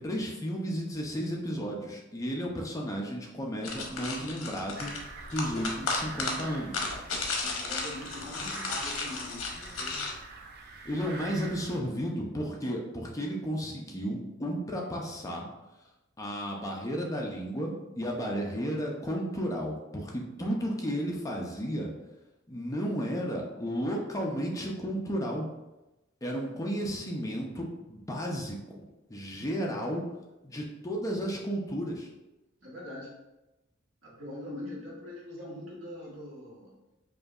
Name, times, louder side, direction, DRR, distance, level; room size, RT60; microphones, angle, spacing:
voice 1, 0.0-4.9 5.3-6.8 10.8-15.5 16.2-21.9 22.5-25.5 26.2-28.8 29.1-30.0 30.4-32.1, equal, 15° left, -1 dB, 0.5 m, -33 dB
sound 1, 3.6-10.1, left 3 dB, 80° left, 0.7 m, -34 dB
sound 2, 4.8-11.8, right 3 dB, 50° right, 0.5 m, -46 dB
voice 2, 7.4-9.4 9.8-10.1 32.6-33.1 34.0-36.7, left 1 dB, 70° right, -5 dB, 1.4 m, -42 dB
4.9 x 2.7 x 2.4 m, 1.0 s
head